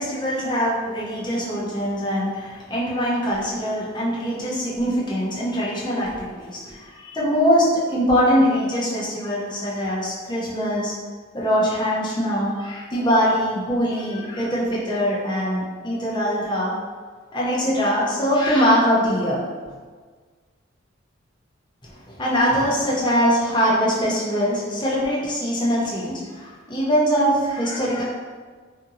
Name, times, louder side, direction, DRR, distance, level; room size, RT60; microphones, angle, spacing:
voice 1, 0.0-10.9 11.3-16.7 17.3-19.4 22.1-28.0, equal, 25° left, -6 dB, 0.7 m, -22 dB
2.6 x 2.6 x 2.7 m, 1.5 s
head